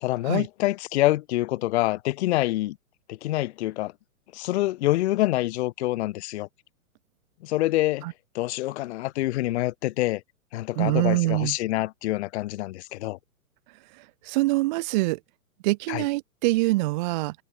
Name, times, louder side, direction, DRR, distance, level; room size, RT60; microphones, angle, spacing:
voice 1, 0.0-2.8 3.1-3.9 4.3-6.5 7.4-8.0 8.3-10.2 10.5-13.2 15.9-16.0, left 17 dB, 50° left, 0.5 m, -26 dB
voice 2, 10.8-11.5 14.3-15.2 15.6-17.3, right 21 dB, 30° right, 0.5 m, -24 dB
hypercardioid pair, 130°, 44 cm